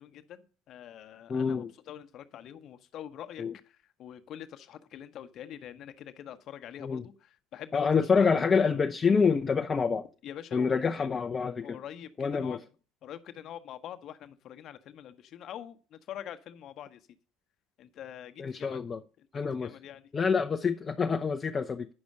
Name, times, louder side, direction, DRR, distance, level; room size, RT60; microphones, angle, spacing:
voice 1, 0.0-8.3 8.5-8.8 10.2-11.1 11.6-12.6 13.0-17.0 17.8-18.8 19.2-20.0, left 10 dB, 45° left, 1.0 m, -45 dB
voice 2, 1.3-1.7 3.4-3.5 6.8-7.1 7.7-10.1 10.5-11.8 12.2-12.6 18.4-19.0 19.3-19.8 20.1-21.9, left 5 dB, 25° left, 0.6 m, -27 dB
9.7 x 6.1 x 6.4 m
figure-of-eight pair, 65°, 0 cm